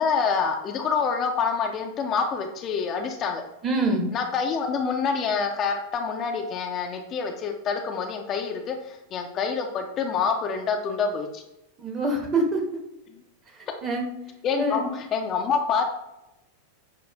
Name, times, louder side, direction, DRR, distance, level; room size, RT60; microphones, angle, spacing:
voice 1, 0.0-3.4 4.1-11.4 13.1-13.2 14.4-15.8, left 5 dB, 30° left, 3 dB, 0.4 m, -27 dB
voice 2, 3.6-4.1 11.8-12.6 13.8-14.1 14.6-14.9, right 2 dB, 25° right, 2 dB, 0.9 m, -24 dB
6.6 x 2.5 x 2.4 m, 0.90 s
figure-of-eight pair, 90°, 0 cm